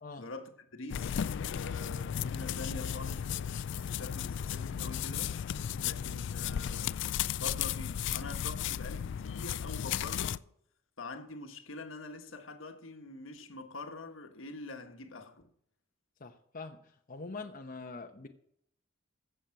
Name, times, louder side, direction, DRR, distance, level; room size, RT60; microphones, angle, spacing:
voice 1, 0.2-5.4 5.8-6.9 7.3-10.5 11.0-15.5, left 3 dB, 80° left, 1.4 m, -45 dB
sound 1, 0.9-10.4, left 9 dB, 65° left, 0.4 m, -35 dB
voice 2, 16.2-16.8 17.1-18.3, left 3 dB, 45° left, 0.9 m, -44 dB
15.0 x 6.9 x 5.9 m
head